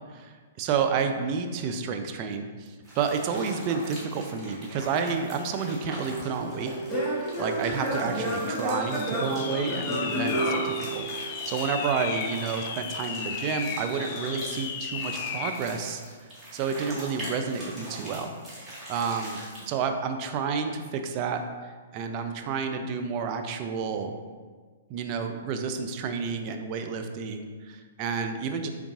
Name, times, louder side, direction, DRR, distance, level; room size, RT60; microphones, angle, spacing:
voice 1, 0.1-6.7 7.1-16.0 16.5-18.3 18.9-19.4 19.7-24.1 24.9-28.7, right 5 dB, 40° right, 6 dB, 0.3 m, -30 dB
sound 1, 2.8-19.8, right 1 dB, 15° right, 1.3 m, -43 dB
Singing / Plucked string instrument, 5.6-11.5, right 1 dB, 10° left, 0.9 m, -31 dB
sound 2, 8.7-15.6, left 7 dB, 45° left, 0.3 m, -35 dB
3.9 x 3.5 x 2.3 m, 1.5 s
hypercardioid pair, 120°, 0 cm